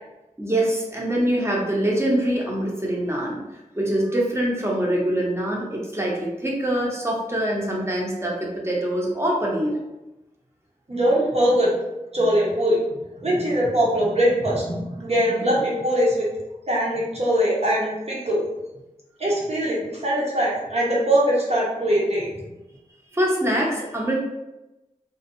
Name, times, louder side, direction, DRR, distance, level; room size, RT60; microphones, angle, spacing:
voice 1, 0.4-3.4 3.8-9.7 23.1-24.1, right 1 dB, 20° right, -3 dB, 0.8 m, -24 dB
voice 2, 10.9-11.7 12.1-12.8 13.2-16.3 16.7-18.4 19.2-22.3, equal, 50° right, -5 dB, 1.0 m, -21 dB
2.5 x 2.3 x 2.6 m, 0.99 s
cardioid pair, 40°, 14 cm